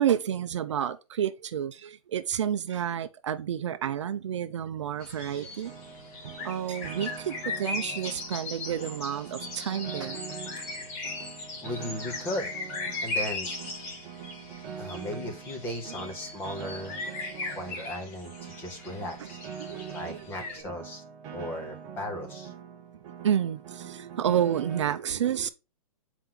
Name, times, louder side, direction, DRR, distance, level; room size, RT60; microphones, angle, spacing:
voice 1, 0.0-5.7 6.4-10.2 17.0-17.1 19.6-20.2 23.2-25.5, right 9 dB, 55° right, 0.6 m, -30 dB
sound 1, 5.0-20.6, left 3 dB, 25° left, 1.2 m, -38 dB
Piano, 5.6-24.8, right 7 dB, 15° right, 0.7 m, -43 dB
voice 2, 11.6-12.5 13.0-13.5 14.8-17.0 17.4-19.4 19.9-21.0 21.3-22.5, left 1 dB, 10° left, 0.8 m, -36 dB
7.4 x 4.6 x 3.7 m
hypercardioid pair, 175°, 19 cm